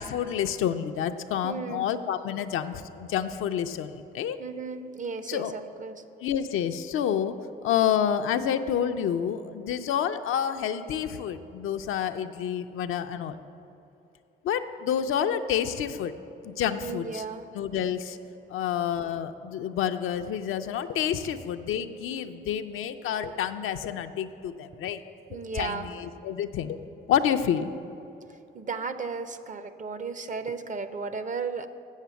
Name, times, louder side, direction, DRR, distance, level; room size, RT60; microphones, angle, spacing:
voice 1, 0.0-4.4 5.3-5.5 6.2-7.3 7.6-13.4 14.4-16.1 16.4-17.2 17.5-18.2 18.5-25.0 25.5-26.8 27.1-27.7, left 9 dB, 75° left, 8 dB, 0.5 m, -28 dB
voice 2, 1.4-1.9 4.4-6.0 16.8-17.5 25.3-25.9 28.3-31.7, right 4 dB, 40° right, 11 dB, 0.6 m, -35 dB
7.5 x 7.3 x 6.9 m, 2.8 s
cardioid pair, 70°, 21 cm